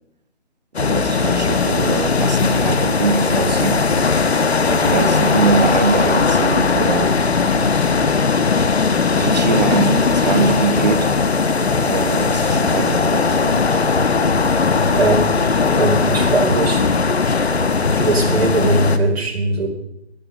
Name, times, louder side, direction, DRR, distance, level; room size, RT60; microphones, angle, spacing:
sound 1, 0.7-19.0, left 4 dB, 65° left, 1.4 m, -18 dB
voice 1, 0.8-3.9 4.7-7.2 9.2-11.1 11.8-13.8, right 5 dB, 40° right, 0.9 m, -22 dB
voice 2, 14.9-16.8 18.0-19.7, right 2 dB, 60° right, 4.8 m, -19 dB
14.0 x 12.0 x 6.5 m
figure-of-eight pair, 165°, 34 cm